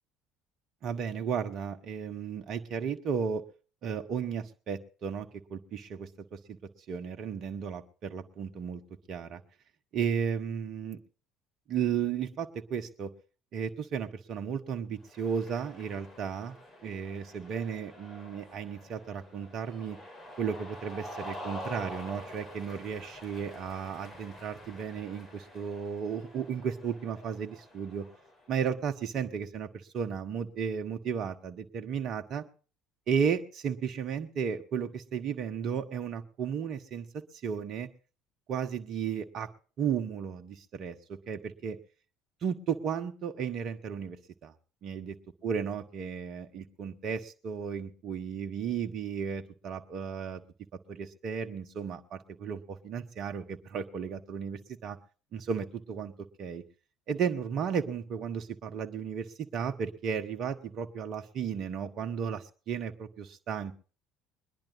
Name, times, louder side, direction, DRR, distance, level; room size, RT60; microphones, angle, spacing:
voice 1, 0.8-3.4 3.8-6.6 6.9-8.8 9.1-9.4 9.9-11.0 11.7-13.1 13.5-16.5 16.8-20.0 20.4-28.1 28.5-32.4 33.1-37.9 38.5-39.5 39.8-41.0 41.3-41.8 42.4-44.2 44.4-44.5 44.8-45.1 45.4-50.4 50.9-55.0 55.3-56.1 56.4-56.6 57.1-63.7, right 7 dB, 50° right, 5 dB, 1.2 m, -34 dB
Cheering, 15.0-28.5, left 1 dB, 30° left, 4.1 m, -47 dB
22.0 x 10.5 x 4.0 m, 0.38 s
hypercardioid pair, 60°, 0 cm